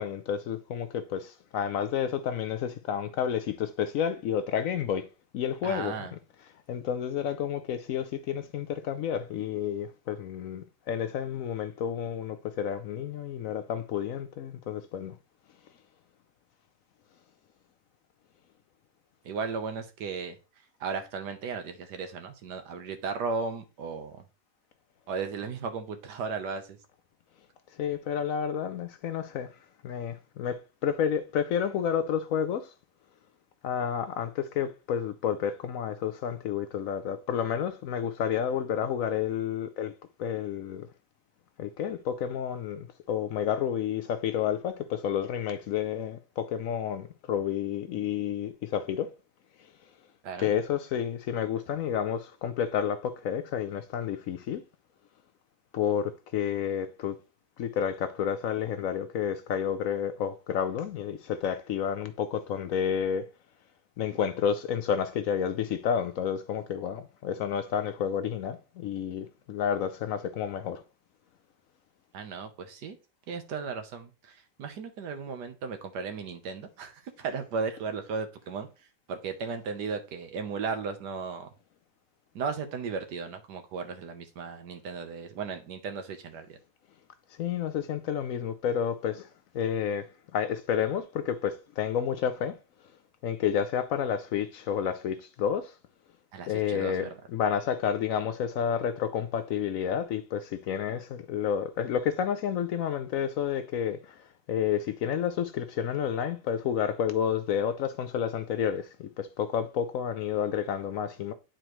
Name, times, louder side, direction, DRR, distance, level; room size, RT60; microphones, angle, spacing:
voice 1, 0.0-5.1 5.3-6.1 6.7-15.1 27.8-29.5 29.8-32.7 33.6-39.9 40.2-40.9 41.6-49.1 50.4-54.6 55.7-57.1 57.6-63.3 64.0-70.8 87.4-89.3 89.5-90.1 90.3-92.6 93.2-95.7 96.5-104.2 104.5-111.3, left 8 dB, 70° left, 0.8 m, -30 dB
voice 2, 5.6-6.1 19.2-20.4 20.8-24.2 25.1-26.8 50.2-50.5 72.1-73.0 73.3-78.7 79.1-81.5 82.3-86.6 96.3-97.2, right 5 dB, 85° right, 1.6 m, -35 dB
9.1 x 4.2 x 3.1 m
omnidirectional pair, 1.7 m